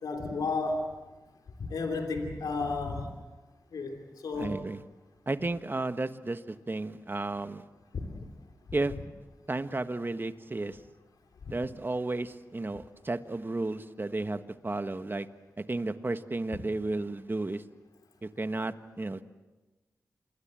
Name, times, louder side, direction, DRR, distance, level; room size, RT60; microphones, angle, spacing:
voice 1, 0.0-0.9 1.7-3.1 3.7-4.5 7.9-8.3 11.4-11.5, left 3 dB, 90° left, 4 dB, 3.0 m, -32 dB
voice 2, 4.3-4.8 5.3-7.6 8.7-8.9 9.5-10.8 11.5-15.3 15.6-17.6 18.4-19.2, right 2 dB, 35° right, 10 dB, 1.5 m, -33 dB
27.5 x 21.0 x 7.7 m, 1.2 s
cardioid pair, 50°, 6 cm